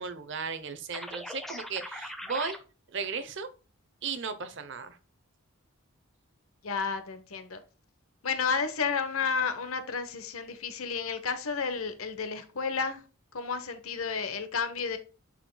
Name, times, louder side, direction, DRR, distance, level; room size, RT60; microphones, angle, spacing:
voice 1, 0.0-2.6 2.9-3.5 4.0-5.0, right 5 dB, 55° right, 0.8 m, -35 dB
sound 1, 0.9-2.6, left 1 dB, ahead, 0.6 m, -40 dB
voice 2, 6.6-7.6 8.2-13.0 13.3-15.0, left 5 dB, 75° left, 1.0 m, -31 dB
10.0 x 4.3 x 2.2 m
head